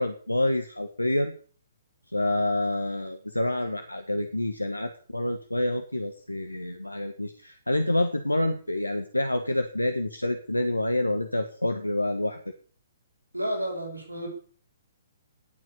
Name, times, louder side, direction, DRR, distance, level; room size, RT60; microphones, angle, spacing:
voice 1, 0.0-1.3 2.1-12.4, left 1 dB, 85° left, 8 dB, 1.6 m, -27 dB
voice 2, 13.3-14.3, equal, 85° right, 2 dB, 6.2 m, -31 dB
19.5 x 7.7 x 8.4 m, 0.44 s
figure-of-eight pair, 125°, 0 cm